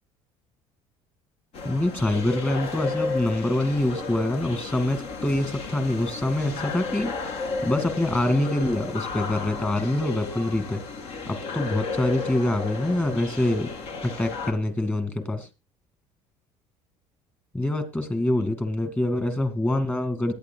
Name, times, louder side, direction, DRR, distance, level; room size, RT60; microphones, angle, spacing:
sound 1, 1.5-14.5, left 4 dB, 60° left, 2.5 m, -33 dB
voice 1, 1.6-7.1 7.6-10.8 11.3-13.7 14.0-15.5 17.5-20.3, left 1 dB, 15° left, 9 dB, 2.2 m, -25 dB
21.5 x 9.3 x 2.3 m, 0.25 s
cardioid pair, 135°, 12 cm